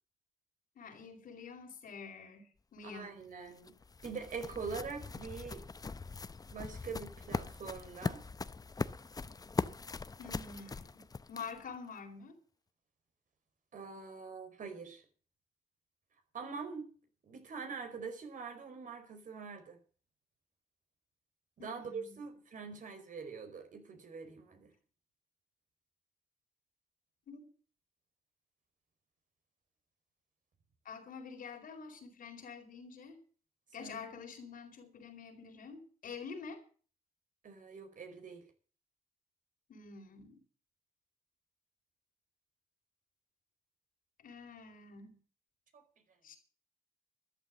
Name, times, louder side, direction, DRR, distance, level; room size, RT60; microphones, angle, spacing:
voice 1, 0.7-3.2 10.2-12.4 21.6-22.3 27.3-27.5 30.8-33.2 33.7-36.6 39.7-40.4 44.2-45.2 46.2-46.4, left 5 dB, 85° left, 4.3 m, -48 dB
voice 2, 2.8-3.8 4.0-5.6 6.5-8.2 13.7-15.0 16.3-16.9 17.2-19.8 21.6-24.7 33.8-34.1 37.4-38.4 45.7-45.8, right 5 dB, 70° right, 4.8 m, -44 dB
sound 1, 3.2-11.8, left 4 dB, 25° left, 0.7 m, -41 dB
13.5 x 12.0 x 7.4 m
wide cardioid pair, 115°, 14 cm